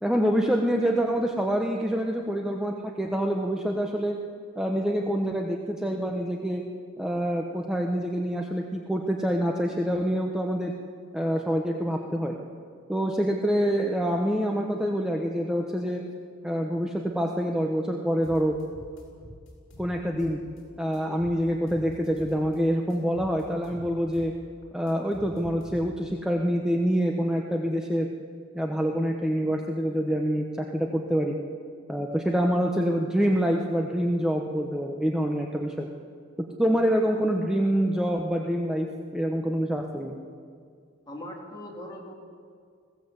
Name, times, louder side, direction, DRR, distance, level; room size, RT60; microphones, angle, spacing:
voice 1, 0.0-4.2 4.6-6.6 7.0-10.7 11.1-12.3 12.9-16.0 16.4-18.6 19.8-20.4 20.8-24.3 24.7-28.1 28.5-31.4 31.9-35.9 36.6-40.2, equal, 5° right, 1 dB, 1.0 m, -26 dB
sound 1, 18.2-20.6 20.9-22.6 22.9-26.1, equal, 60° left, 5.6 m, -47 dB
voice 2, 41.1-42.1, left 1 dB, 20° left, -2 dB, 3.4 m, -40 dB
20.5 x 16.0 x 8.1 m, 2.2 s
head